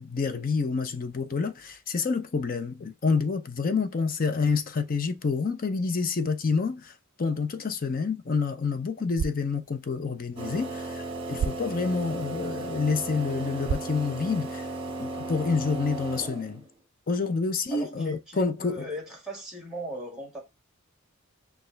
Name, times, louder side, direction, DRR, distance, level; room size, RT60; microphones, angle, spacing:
voice 1, 0.0-14.7 15.0-16.6 17.1-18.9, left 4 dB, 40° left, 0.5 m, -28 dB
sound 1, 9.0-15.0, right 6 dB, 70° right, 0.3 m, -38 dB
sound 2, 10.4-16.7, right 2 dB, 25° right, 1.3 m, -35 dB
voice 2, 17.7-20.4, equal, 5° right, 1.7 m, -38 dB
6.5 x 2.3 x 3.3 m
head